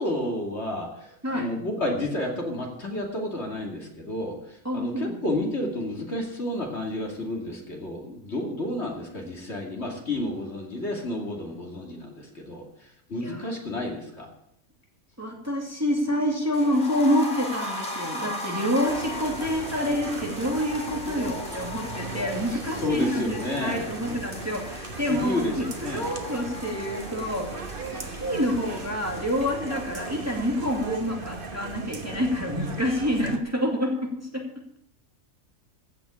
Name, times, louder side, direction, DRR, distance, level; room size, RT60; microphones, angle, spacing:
voice 1, 0.0-12.7 13.1-14.3 22.5-24.2 25.1-26.1, left 1 dB, 55° left, 0 dB, 2.8 m, -31 dB
voice 2, 4.6-5.2 13.2-13.5 15.2-27.8 28.1-34.4, equal, 10° right, 0 dB, 2.4 m, -27 dB
sound 1, 16.5-32.4 32.6-32.7 33.0-33.1, left 1 dB, 40° left, 2.8 m, -39 dB
sound 2, 18.9-33.4, right 3 dB, 45° right, 1.4 m, -37 dB
15.5 x 6.0 x 8.5 m, 0.73 s
omnidirectional pair, 1.4 m